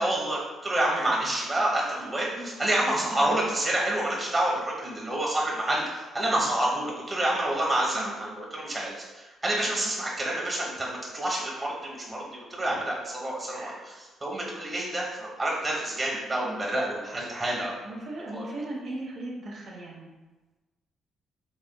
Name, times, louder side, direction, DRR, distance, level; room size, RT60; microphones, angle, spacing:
voice 1, 0.0-13.9 14.2-17.7 18.3-18.4, right 1 dB, 25° right, -3 dB, 1.1 m, -28 dB
voice 2, 2.0-2.5 3.0-3.3 7.9-8.1 12.6-12.9 13.5-13.9 17.8-20.1, right 2 dB, 70° right, -5 dB, 1.0 m, -39 dB
4.2 x 3.6 x 2.2 m, 1.2 s
cardioid pair, 90°, 0 cm